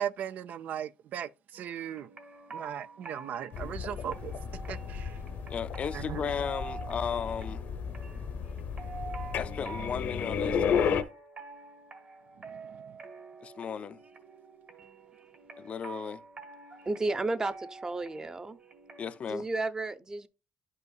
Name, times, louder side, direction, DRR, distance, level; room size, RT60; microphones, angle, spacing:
voice 1, 0.0-2.1 2.5-4.3 4.7-5.2 5.9-6.3 12.4-13.0, right 9 dB, 70° right, 0.4 m, -38 dB
sound 1, 1.5-19.2, right 4 dB, 45° right, 1.7 m, -47 dB
sound 2, 3.5-11.0, left 7 dB, 70° left, 0.8 m, -33 dB
voice 2, 5.5-7.6 9.4-11.0 13.4-14.0 15.6-16.2 19.0-19.5, left 7 dB, 45° left, 0.4 m, -35 dB
voice 3, 16.7-18.6 19.3-20.3, right 2 dB, 25° right, 0.7 m, -33 dB
10.5 x 5.5 x 2.3 m
cardioid pair, 100°, 3 cm